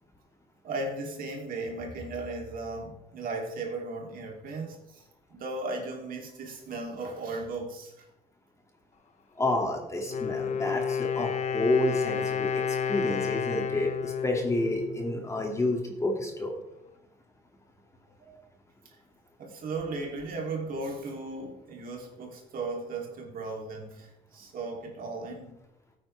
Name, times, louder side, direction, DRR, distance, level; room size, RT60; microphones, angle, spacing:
voice 1, 0.6-5.0 5.3-8.1 13.5-13.6 18.2-18.4 19.4-25.5, right 3 dB, 55° right, 0 dB, 3.2 m, -36 dB
voice 2, 9.4-12.5 12.9-16.5, left 2 dB, 15° left, 1 dB, 2.5 m, -29 dB
Wind instrument woodwind instrument, 10.0-15.7, left 7 dB, 45° left, 1.0 m, -31 dB
14.5 x 9.0 x 3.5 m, 0.85 s
cardioid pair, 110°, 17 cm